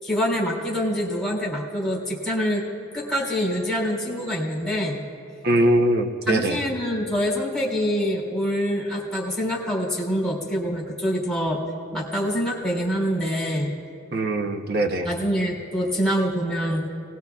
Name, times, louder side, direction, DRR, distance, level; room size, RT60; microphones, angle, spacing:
voice 1, 0.0-2.6 2.9-5.0 6.3-11.6 11.9-13.7 15.0-16.9, equal, 5° left, -5 dB, 3.3 m, -25 dB
voice 2, 5.4-6.6 14.1-15.1, right 1 dB, 50° right, 4 dB, 0.9 m, -22 dB
28.0 x 20.0 x 2.4 m, 2.4 s
head